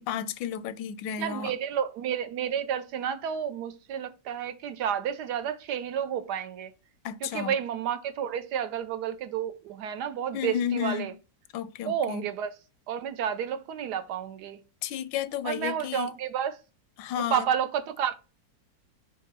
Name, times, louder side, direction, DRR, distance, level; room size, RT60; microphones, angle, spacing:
voice 1, 0.0-1.5 7.0-7.5 10.3-11.2 11.5-12.3 14.8-16.1 17.0-17.5, left 9 dB, 85° left, 1.3 m, -32 dB
voice 2, 1.2-6.7 7.2-11.1 11.8-12.5 12.9-14.6 15.4-16.5 17.3-18.1, right 8 dB, 70° right, 1.1 m, -31 dB
6.3 x 2.8 x 5.3 m
omnidirectional pair, 2.0 m